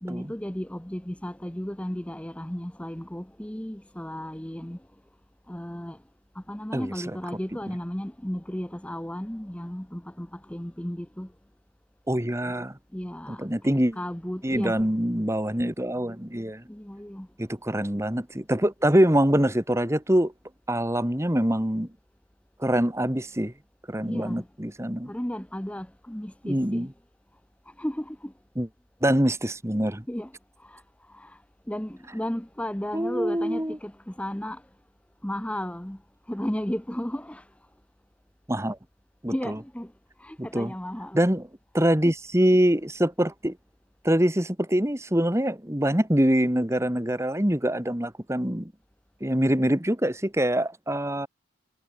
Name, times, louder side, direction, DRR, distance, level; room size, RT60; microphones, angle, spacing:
voice 1, 0.0-4.8 5.5-6.0 6.3-11.3 12.9-14.8 16.7-17.3 17.7-17.8 24.1-24.4 25.1-26.9 27.8-28.3 30.1-30.3 30.6-30.8 31.1-31.4 31.7-34.6 35.2-36.0 36.3-37.5 39.3-39.9 40.2-41.2, equal, 5° left, 0.8 m, -34 dB
voice 2, 6.7-7.2 7.7-7.8 12.1-12.8 13.3-14.0 14.4-16.6 17.4-20.3 20.7-21.9 22.6-23.5 23.9-25.1 26.4-26.9 28.6-28.7 29.0-30.0 32.9-33.8 38.5-38.8 39.2-39.6 40.4-40.7 41.1-41.5 41.7-43.6 44.0-48.7 49.2-51.3, right 1 dB, 15° right, 1.7 m, -24 dB
head